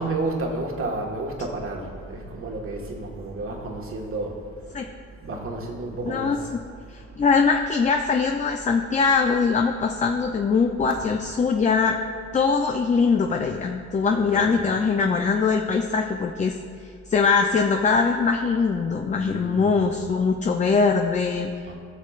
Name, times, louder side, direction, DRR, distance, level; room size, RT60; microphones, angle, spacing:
voice 1, 0.0-4.9 5.2-6.4 10.8-11.1 14.1-14.7 19.2-19.9 21.7-21.8, right 2 dB, 45° right, 0 dB, 1.5 m, -31 dB
voice 2, 6.0-6.4 6.9-11.9 12.3-16.6 16.8-21.7, left 5 dB, 25° left, 4 dB, 0.4 m, -22 dB
16.0 x 6.3 x 2.4 m, 2.2 s
cardioid pair, 90°, 30 cm